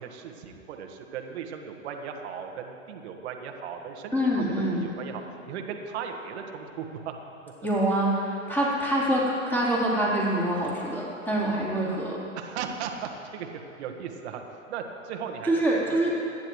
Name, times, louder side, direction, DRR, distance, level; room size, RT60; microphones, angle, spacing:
voice 1, 0.0-4.5 4.8-5.2 5.5-7.1 12.3-13.5 13.8-14.4 14.7-16.0, right 7 dB, 55° right, 3 dB, 1.6 m, -37 dB
voice 2, 4.1-4.8 7.6-12.2 15.4-16.2, right 1 dB, 5° left, -6 dB, 3.8 m, -25 dB
28.5 x 10.5 x 3.2 m, 2.9 s
hypercardioid pair, 115°, 40 cm